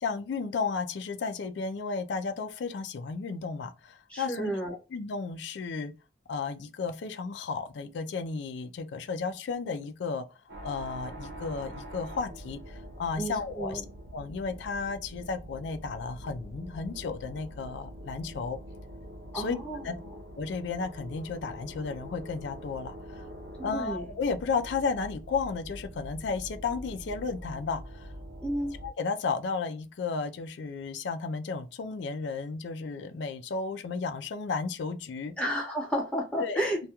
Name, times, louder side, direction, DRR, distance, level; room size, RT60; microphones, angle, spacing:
voice 1, 0.0-4.5 4.9-5.9 6.3-10.3 10.6-13.8 14.1-18.6 19.3-19.6 19.8-19.9 20.4-23.3 23.6-28.1 28.8-35.3 36.4-36.6, left 4 dB, 65° left, 0.4 m, -33 dB
voice 2, 4.1-4.7 13.2-13.8 19.3-19.8 23.6-24.0 28.4-28.8 35.4-36.8, equal, 5° left, 0.8 m, -31 dB
sound 1, 10.5-28.9, equal, 75° right, 0.6 m, -44 dB
2.2 x 2.2 x 2.8 m
head